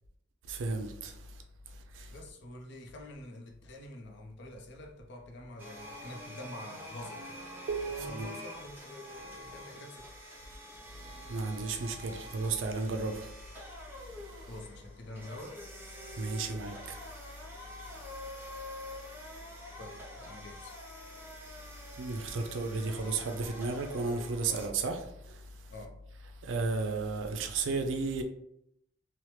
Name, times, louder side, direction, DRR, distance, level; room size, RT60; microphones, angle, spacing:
voice 1, 0.5-1.1 7.7-8.4 11.3-13.3 16.2-16.7 22.0-25.0 26.5-28.2, right 3 dB, 70° right, 0.4 m, -33 dB
voice 2, 2.1-7.4 7.9-10.1 14.5-15.6 19.8-20.8 24.5-24.8 25.7-26.0, left 1 dB, 60° left, 0.5 m, -47 dB
sound 1, 5.6-24.7, left 1 dB, 10° right, 0.6 m, -47 dB
2.8 x 2.0 x 3.1 m
head